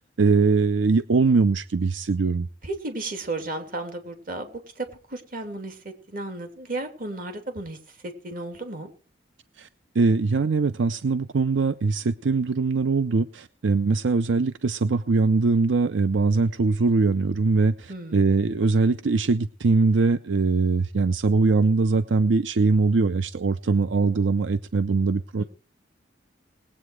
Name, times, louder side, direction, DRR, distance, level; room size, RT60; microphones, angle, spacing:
voice 1, 0.2-2.5 9.6-9.7 9.9-25.4, right 4 dB, 80° right, 14 dB, 0.5 m, -22 dB
voice 2, 2.6-8.9 17.9-18.3 25.4-25.5, right 2 dB, 50° right, 5 dB, 2.9 m, -34 dB
20.0 x 8.6 x 4.7 m, 0.39 s
head